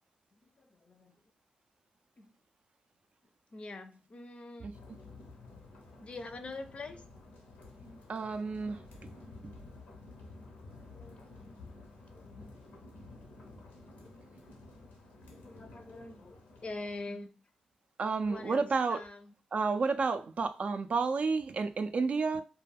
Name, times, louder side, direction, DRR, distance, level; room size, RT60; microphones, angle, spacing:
voice 1, 0.3-1.2 2.2-2.3 3.5-4.7 6.0-7.0 7.8-8.0 9.2-9.3 10.6-11.9 12.1-13.5 13.8-14.9 15.3-17.4 18.3-19.3, left 2 dB, 45° left, 0.5 m, -46 dB
sound 1, 4.7-17.0, left 3 dB, 85° left, 0.6 m, -52 dB
voice 2, 8.1-9.1 9.4-9.5 18.0-19.0 19.5-22.4, right 4 dB, 55° right, 0.3 m, -31 dB
2.2 x 2.2 x 3.3 m
supercardioid pair, 45°, 3 cm